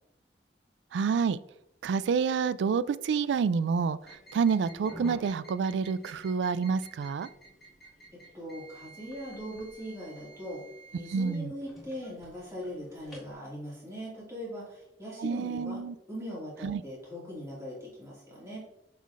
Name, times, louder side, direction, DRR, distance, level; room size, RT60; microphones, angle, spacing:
voice 1, 0.9-1.4 1.8-7.3 11.1-11.5 15.2-16.0 16.6-16.8, right 5 dB, 80° right, 0.3 m, -28 dB
sound 1, 4.0-13.3, right 1 dB, ahead, 2.0 m, -50 dB
voice 2, 8.3-10.6 10.9-15.8 16.1-18.6, equal, 15° right, 2.2 m, -40 dB
7.2 x 5.6 x 2.5 m
head